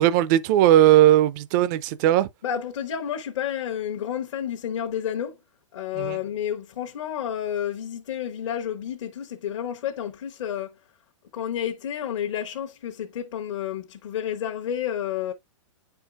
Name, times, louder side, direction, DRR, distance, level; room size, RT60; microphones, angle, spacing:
voice 1, 0.0-2.3 6.0-6.2, right 13 dB, 35° right, 0.4 m, -18 dB
voice 2, 2.4-5.4 5.7-10.8 11.3-15.3, left 9 dB, 70° left, 1.0 m, -30 dB
9.9 x 4.5 x 2.3 m
hypercardioid pair, 140°, 16 cm